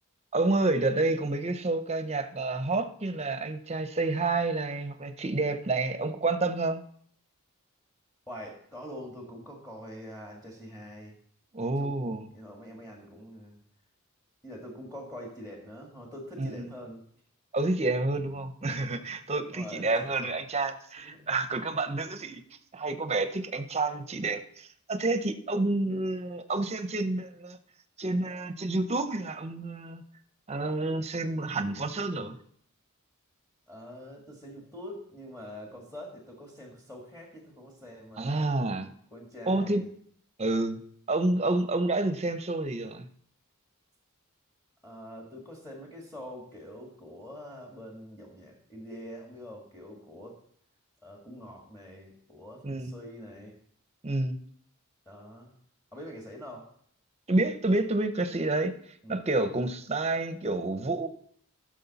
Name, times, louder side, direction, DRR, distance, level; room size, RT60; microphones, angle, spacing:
voice 1, 0.3-6.8 11.5-12.3 16.4-16.7 17.5-22.4 22.7-27.6 28.0-30.0 30.5-32.4 38.2-38.9 39.5-39.8 40.4-40.8 41.1-43.1 52.6-52.9 54.0-54.4 57.3-58.7 59.1-61.1, right 2 dB, 30° right, 9 dB, 0.8 m, -29 dB
voice 2, 8.3-11.1 11.6-13.6 14.4-17.0 18.7-19.1 19.5-20.4 21.0-21.3 21.9-22.1 33.7-38.4 39.1-39.9 44.8-50.4 51.0-53.6 55.1-55.5 55.9-56.7 59.0-59.2, equal, 10° left, -1 dB, 1.7 m, -45 dB
14.5 x 6.4 x 4.1 m, 0.63 s
head